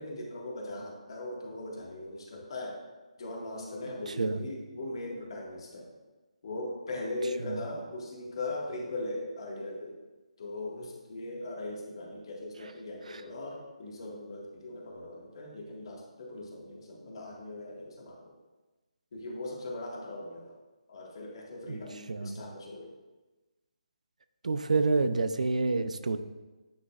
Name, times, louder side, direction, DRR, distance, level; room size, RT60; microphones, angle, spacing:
voice 1, 0.0-2.8 3.2-5.9 6.4-10.0 10.4-18.3 19.1-20.6 20.9-22.9, left 1 dB, 45° left, -1 dB, 1.7 m, -39 dB
voice 2, 4.1-4.4 7.4-7.6 13.1-13.2 21.7-21.8 22.1-22.4 24.4-26.2, right 3 dB, 80° right, 10 dB, 0.5 m, -28 dB
9.6 x 6.2 x 2.4 m, 1.2 s
hypercardioid pair, 165°, 4 cm